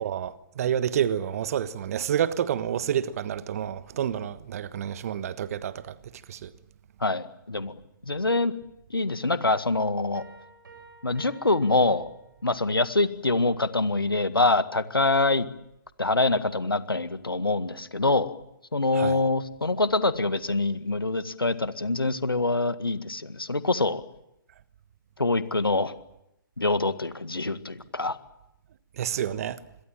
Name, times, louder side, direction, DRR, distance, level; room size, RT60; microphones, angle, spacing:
voice 1, 0.0-5.9 6.3-6.5 19.0-19.2 29.0-29.6, right 9 dB, 40° right, 1.3 m, -29 dB
voice 2, 7.0-7.7 8.0-8.5 8.9-10.2 11.0-12.1 12.4-15.5 16.0-18.3 18.7-24.0 25.2-25.9 26.6-28.2, left 2 dB, 85° left, 1.8 m, -25 dB
sound 1, 10.1-12.6, right 4 dB, 65° right, 7.1 m, -52 dB
27.0 x 22.5 x 7.5 m
figure-of-eight pair, 135°, 12 cm